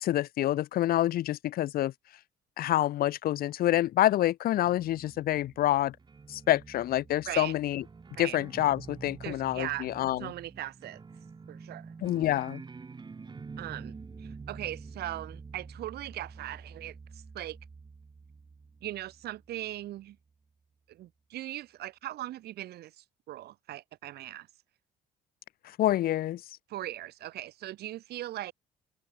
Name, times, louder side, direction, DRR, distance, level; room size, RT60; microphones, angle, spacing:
voice 1, 0.0-1.9 2.6-6.0 6.3-7.8 8.2-10.3 12.0-12.6 25.8-26.4, left 13 dB, 60° left, 0.7 m, -27 dB
sound 1, 4.6-20.0, right 4 dB, 25° right, 6.6 m, -47 dB
voice 2, 9.2-9.9 10.2-11.0 11.5-11.9 13.6-13.9 14.2-17.6 18.8-20.2 20.9-24.5 26.7-28.5, right 14 dB, 70° right, 5.6 m, -39 dB
open air
cardioid pair, 110°, 17 cm